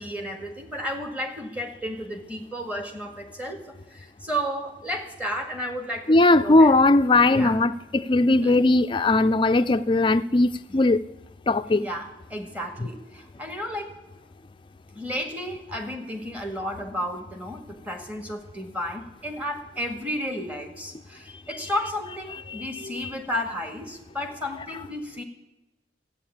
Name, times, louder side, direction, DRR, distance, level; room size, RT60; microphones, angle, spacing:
voice 1, 0.0-6.7 7.3-7.6 8.4-8.6 10.7-10.8 11.7-13.9 14.9-25.2, equal, 10° right, 1.8 m, -33 dB
voice 2, 6.1-11.0 11.5-11.8, left 2 dB, 25° left, 0.4 m, -19 dB
13.0 x 9.0 x 8.6 m
head